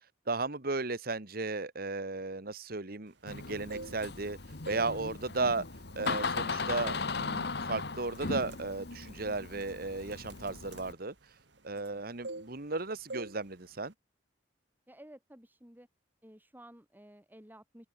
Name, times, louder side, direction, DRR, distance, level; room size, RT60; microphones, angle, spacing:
voice 1, 0.3-4.4 4.7-5.6 6.0-11.1 11.6-13.9, right 3 dB, 55° right, 1.7 m, -35 dB
Door, 3.3-10.9, left 4 dB, 65° left, 1.5 m, -37 dB
sound 1, 3.5-4.2 4.6-5.7 6.0-6.4 6.8-7.0 7.6-7.8 8.1-11.9 12.2-12.8 13.1-13.4 13.7-13.9, right 2 dB, 90° right, 3.6 m, -44 dB
sound 2, 3.6-8.3 8.6-8.7, equal, 30° left, 5.9 m, -64 dB
voice 2, 14.9-15.9 16.2-17.9, right 1 dB, 10° right, 4.0 m, -54 dB
open air
head